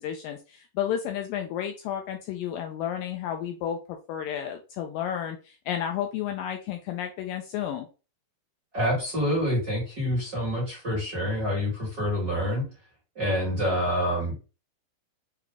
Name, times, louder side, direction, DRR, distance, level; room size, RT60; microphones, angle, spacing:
voice 1, 0.0-7.9, left 9 dB, 80° left, 4 dB, 2.0 m, -32 dB
voice 2, 8.7-12.6 13.1-14.3, equal, 40° right, -5 dB, 1.5 m, -27 dB
6.6 x 2.4 x 3.4 m, 0.33 s
omnidirectional pair, 4.3 m